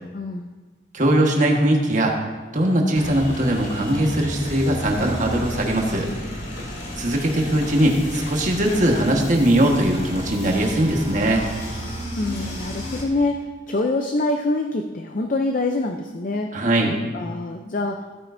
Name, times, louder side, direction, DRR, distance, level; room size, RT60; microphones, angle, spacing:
voice 1, 0.1-0.5 11.8-16.5 17.1-18.2, left 2 dB, 45° left, 4 dB, 0.5 m, -25 dB
voice 2, 0.9-2.1 2.5-6.1 7.0-11.4 16.5-17.0, right 1 dB, 40° right, 0 dB, 1.5 m, -20 dB
sound 1, 2.9-13.0, equal, 75° left, 2.7 m, -33 dB
15.5 x 9.3 x 2.7 m, 1.3 s
head